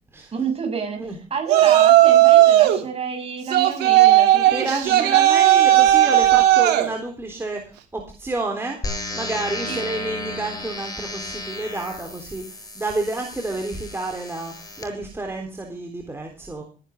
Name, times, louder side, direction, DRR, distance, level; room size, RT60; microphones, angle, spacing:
voice 1, 0.3-1.0 1.3-5.1 5.5-5.7 6.2-6.3 9.7-9.8, right 6 dB, 35° right, 4 dB, 7.2 m, -29 dB
Yell, 1.5-2.8 3.5-6.9, right 13 dB, 80° right, 3.0 m, -15 dB
voice 2, 4.5-16.6, right 2 dB, 15° right, 1 dB, 3.6 m, -30 dB
sound 1, 8.8-14.8, left 2 dB, 20° left, 7.4 m, -33 dB
18.0 x 11.0 x 3.7 m, 0.35 s
cardioid pair, 110°, 17 cm